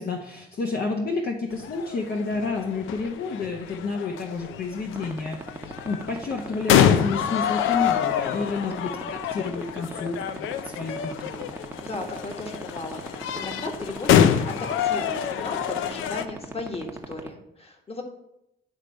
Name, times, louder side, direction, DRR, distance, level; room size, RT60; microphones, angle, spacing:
voice 1, 0.0-5.4 5.8-11.5, left 4 dB, 50° left, 1 dB, 1.0 m, -30 dB
sound 1, 1.5-16.3, left 9 dB, 85° left, 0.5 m, -26 dB
sound 2, 5.0-17.3, right 2 dB, 10° right, 0.8 m, -34 dB
voice 2, 11.8-18.0, left 2 dB, 30° left, 4 dB, 1.5 m, -36 dB
9.6 x 3.3 x 5.3 m, 0.83 s
cardioid pair, 90°, 20 cm